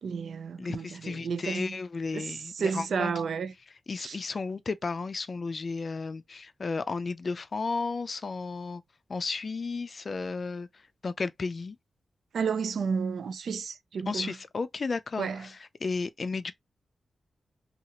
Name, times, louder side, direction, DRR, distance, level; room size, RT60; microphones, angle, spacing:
voice 1, 0.0-1.8 2.1-3.5 4.0-4.2 12.3-14.4 15.2-15.5, right 5 dB, 80° right, 0.3 m, -32 dB
voice 2, 0.6-3.1 3.9-8.8 9.1-10.7 11.0-11.8 14.1-16.5, left 4 dB, 50° left, 0.3 m, -33 dB
2.8 x 2.4 x 2.8 m
wide cardioid pair, 95°, 0 cm